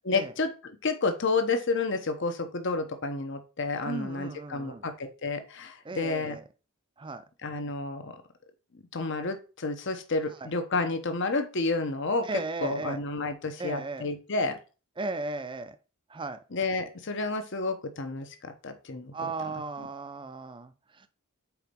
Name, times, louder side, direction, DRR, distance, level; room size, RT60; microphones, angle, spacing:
voice 1, 0.0-6.4 7.4-8.1 8.9-12.3 12.6-14.6 16.5-19.3 19.8-19.9, left 3 dB, 55° left, 0.9 m, -30 dB
voice 2, 3.8-4.9 5.8-6.4 7.0-7.2 10.4-10.5 12.2-13.0 13.6-14.1 15.0-15.8 16.1-16.4 19.1-21.1, right 3 dB, 20° right, 0.5 m, -36 dB
4.7 x 4.4 x 5.2 m
head